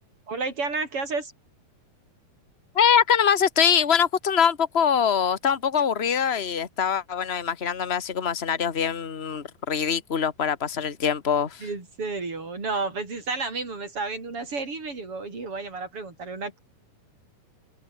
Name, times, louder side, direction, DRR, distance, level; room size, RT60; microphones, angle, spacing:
voice 1, 0.3-1.3 11.6-16.6, right 3 dB, 40° right, 6.7 m, -31 dB
voice 2, 2.7-11.7, left 7 dB, 40° left, 0.9 m, -23 dB
open air
omnidirectional pair, 4.0 m